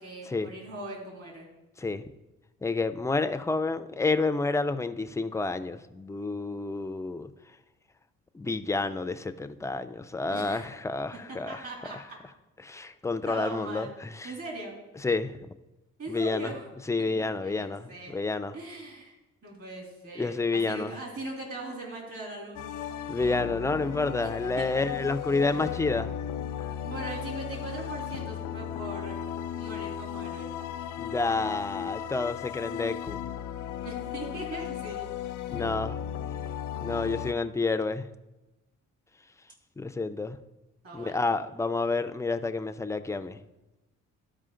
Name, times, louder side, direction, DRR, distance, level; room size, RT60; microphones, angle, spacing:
voice 1, 0.0-1.5 10.3-10.7 11.3-12.2 13.2-13.9 14.2-14.8 16.0-16.7 17.0-18.1 18.5-19.1 19.4-22.7 24.2-24.3 24.6-24.7 26.8-29.3 29.5-30.5 33.8-35.1 40.8-41.2, right 2 dB, 50° right, -1 dB, 3.3 m, -40 dB
voice 2, 2.6-7.3 8.3-11.6 11.9-12.0 12.6-14.3 15.0-15.3 16.1-16.5 16.9-18.5 20.2-20.9 23.1-26.1 31.0-33.2 35.5-36.0 36.8-38.1 39.8-40.4 40.9-43.4, left 3 dB, 10° left, 10 dB, 0.4 m, -29 dB
sound 1, 22.5-37.3, left 10 dB, 85° left, 0.5 m, -36 dB
12.5 x 4.9 x 3.8 m, 1.0 s
cardioid pair, 90°, 30 cm